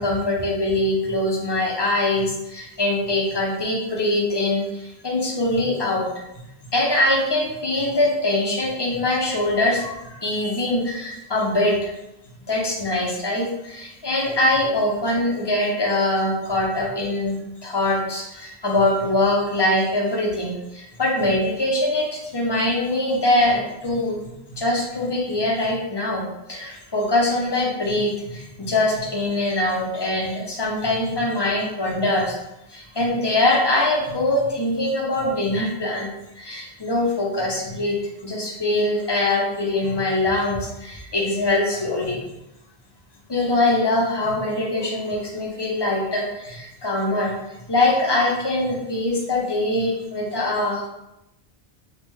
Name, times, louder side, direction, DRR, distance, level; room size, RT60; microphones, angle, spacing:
voice 1, 0.0-6.1 6.7-11.9 12.5-26.2 26.5-32.4 32.7-36.1 36.4-42.2 43.3-47.3 47.7-50.9, left 1 dB, 35° left, -2 dB, 0.4 m, -23 dB
3.2 x 2.1 x 3.0 m, 0.90 s
omnidirectional pair, 1.1 m